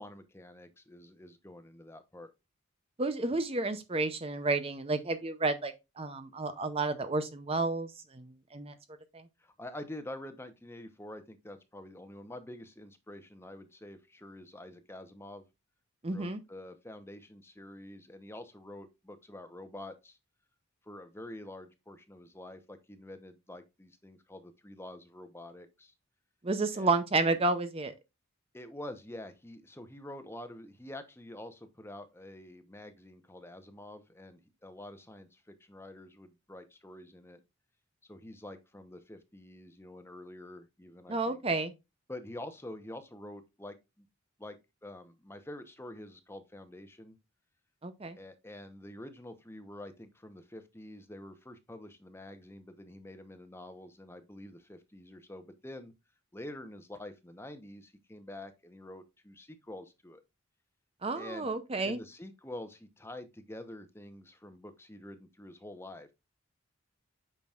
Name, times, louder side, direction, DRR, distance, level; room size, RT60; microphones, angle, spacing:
voice 1, 0.0-2.3 9.4-15.4 16.0-20.2 20.8-25.9 26.7-26.9 28.5-37.4 38.1-41.4 42.1-44.1 44.4-47.2 48.2-55.9 56.3-60.2 61.1-61.5 61.8-66.1, left 1 dB, 10° left, 0.9 m, -47 dB
voice 2, 3.0-8.7 9.1-9.2 16.0-16.4 26.4-27.9 41.1-41.7 47.8-48.2 61.0-62.0, right 3 dB, 30° right, 0.6 m, -31 dB
8.8 x 6.0 x 2.4 m
head